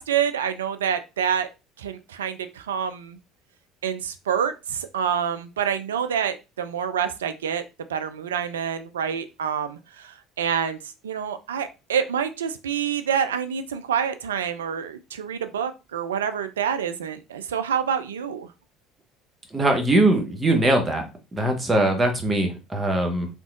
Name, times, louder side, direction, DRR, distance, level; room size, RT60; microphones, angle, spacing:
voice 1, 0.0-1.5 1.8-3.2 3.8-7.6 7.9-10.8 11.0-18.5, right 8 dB, 80° right, 10 dB, 0.3 m, -27 dB
voice 2, 19.5-21.0 21.3-23.3, right 1 dB, 20° right, 3 dB, 1.0 m, -21 dB
3.5 x 2.9 x 2.4 m, 0.28 s
figure-of-eight pair, 60°, 0 cm